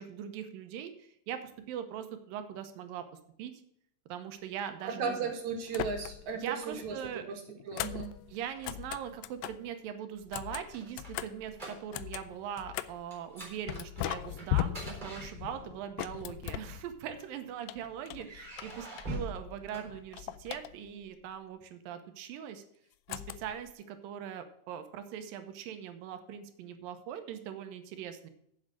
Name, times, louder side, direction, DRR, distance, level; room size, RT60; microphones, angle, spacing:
voice 1, 0.0-3.1 3.4-3.5 4.1-5.2 6.3-7.2 8.3-22.6 23.1-28.3, right 9 dB, 85° right, 8 dB, 2.6 m, -41 dB
voice 2, 4.8-7.4 7.7-8.2, right 5 dB, 60° right, 4 dB, 2.8 m, -36 dB
sound 1, 5.7-6.4 6.7-9.7 10.2-13.1 13.7-17.2 17.6-19.4 19.7-21.1 23.1-23.7, left 15 dB, 85° left, 2.2 m, -39 dB
sound 2, 10.5-12.2 12.5-12.7 13.1-15.9 16.8-17.6 18.2-20.5, right 1 dB, 15° right, 3.8 m, -44 dB
7.7 x 7.6 x 7.5 m, 0.70 s
omnidirectional pair, 4.0 m